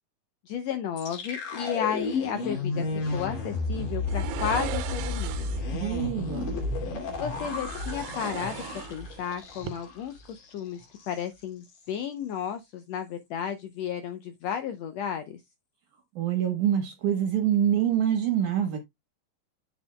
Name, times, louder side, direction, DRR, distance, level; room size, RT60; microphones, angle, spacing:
voice 1, 0.5-2.9 3.1-5.6 7.2-8.6 8.9-15.4, left 8 dB, 90° left, 1.5 m, -33 dB
sound 1, 1.0-10.0 10.3-10.5 10.8-11.2, left 3 dB, 65° left, 3.9 m, -32 dB
sound 2, 4.1-5.7 7.3-9.3 9.5-9.7, right 13 dB, 85° right, 2.4 m, -38 dB
voice 2, 5.7-6.6 16.2-18.8, right 9 dB, 65° right, 2.5 m, -26 dB
9.0 x 7.3 x 2.2 m
omnidirectional pair, 3.9 m